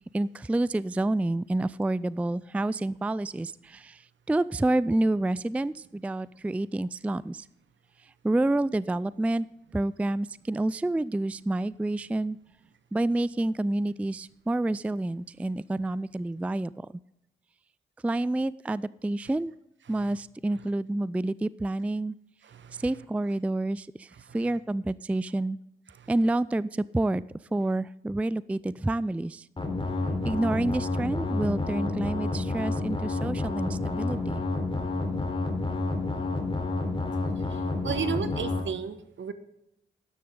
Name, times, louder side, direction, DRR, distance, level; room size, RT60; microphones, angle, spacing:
voice 1, 0.1-7.5 8.0-9.5 9.7-12.4 12.9-16.9 18.0-19.5 19.9-22.2 22.8-25.6 26.1-27.2 27.5-29.5 30.2-34.4, right 2 dB, 5° right, 19 dB, 0.3 m, -28 dB
voice 2, 22.4-22.8 24.3-24.4 26.0-26.1 37.5-39.3, right 7 dB, 65° right, 11 dB, 1.2 m, -34 dB
sound 1, 29.6-38.6, left 3 dB, 25° left, 3.4 m, -29 dB
12.5 x 10.5 x 3.8 m, 0.82 s
supercardioid pair, 40°, 21 cm